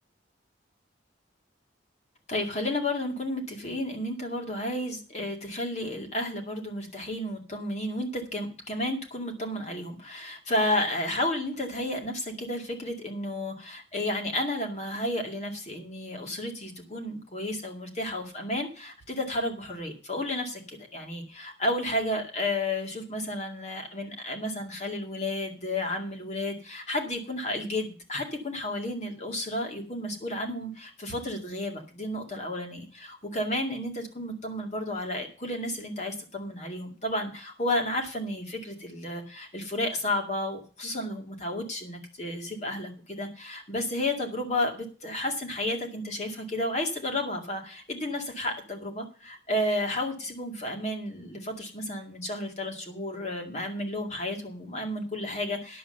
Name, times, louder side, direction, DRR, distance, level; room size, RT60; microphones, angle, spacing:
voice 1, 2.3-55.8, left 1 dB, 35° left, 3 dB, 2.2 m, -32 dB
10.0 x 7.5 x 6.6 m, 0.38 s
head